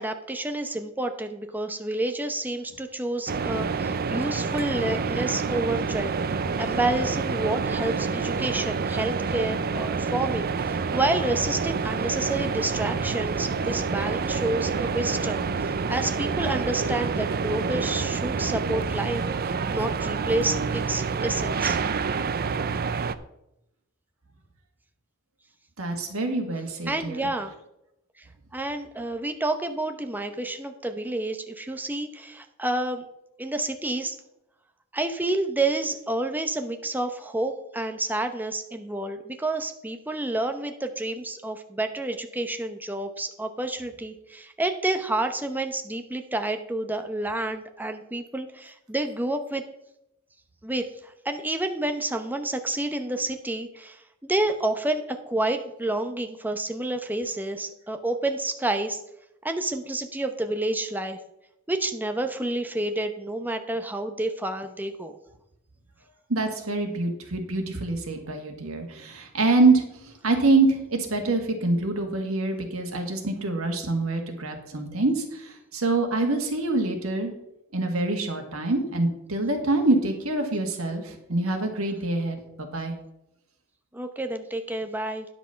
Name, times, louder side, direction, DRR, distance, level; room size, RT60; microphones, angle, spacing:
voice 1, 0.0-21.8 26.9-27.5 28.5-33.0 33.4-34.2 34.9-49.6 50.6-59.0 59.4-61.2 61.7-65.2 83.9-85.3, right 2 dB, 10° right, 6 dB, 0.8 m, -29 dB
sound 1, 3.3-23.2, right 5 dB, 45° right, 0.5 m, -28 dB
voice 2, 25.8-27.3 66.3-77.3 77.7-82.9, right 2 dB, 80° right, 4 dB, 1.8 m, -25 dB
10.0 x 6.1 x 5.7 m, 0.85 s
head